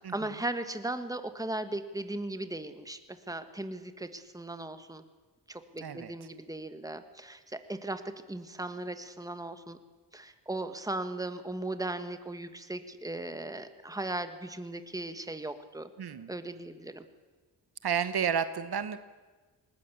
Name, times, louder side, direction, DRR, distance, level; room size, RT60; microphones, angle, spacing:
voice 1, 0.0-5.0 5.5-9.8 10.1-15.9 16.3-17.0, right 2 dB, 10° right, 9 dB, 1.5 m, -37 dB
voice 2, 5.8-6.1 16.0-16.3 17.8-19.0, right 7 dB, 60° right, 12 dB, 1.1 m, -31 dB
19.5 x 19.5 x 8.4 m, 1.3 s
cardioid pair, 80°, 43 cm